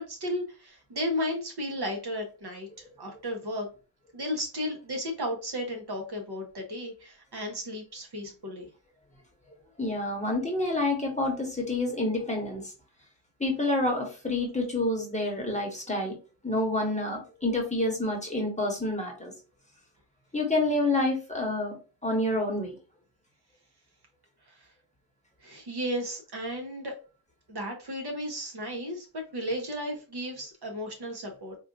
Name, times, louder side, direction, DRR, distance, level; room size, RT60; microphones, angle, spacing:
voice 1, 0.0-3.7 4.1-8.7 24.5-24.7 25.4-26.9 27.5-31.6, equal, 55° right, 2 dB, 1.0 m, -34 dB
voice 2, 9.8-12.7 13.4-16.2 16.4-19.3 20.3-21.8 22.0-22.8, left 2 dB, 15° left, 0 dB, 1.1 m, -28 dB
4.3 x 2.4 x 2.5 m, 0.34 s
wide cardioid pair, 100°, 48 cm